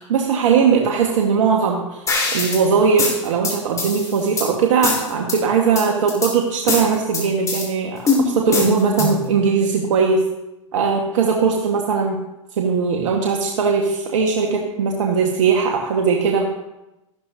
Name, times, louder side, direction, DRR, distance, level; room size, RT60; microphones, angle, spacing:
voice 1, 0.1-2.0 2.3-10.2 10.7-12.2 12.6-16.5, right 5 dB, 70° right, 1 dB, 1.6 m, -19 dB
sound 1, 2.1-2.6 3.0-4.5 4.8-5.4 5.8-6.3 6.7-7.7 8.1-9.3, left 3 dB, 20° left, 3.9 m, -22 dB
14.0 x 12.5 x 2.8 m, 0.94 s
hypercardioid pair, 110°, 17 cm